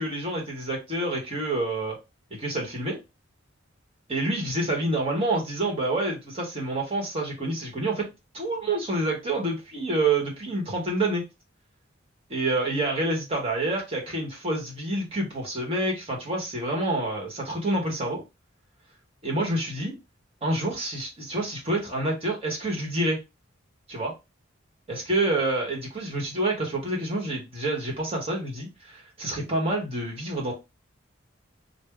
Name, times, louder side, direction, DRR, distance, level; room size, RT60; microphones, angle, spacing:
voice 1, 0.0-2.0 2.3-3.0 4.1-8.1 8.3-11.2 12.3-18.2 19.2-20.0 20.4-23.2 23.9-24.1 24.9-30.5, right 2 dB, 30° right, -1 dB, 1.2 m, -28 dB
3.3 x 2.2 x 3.4 m, 0.25 s
head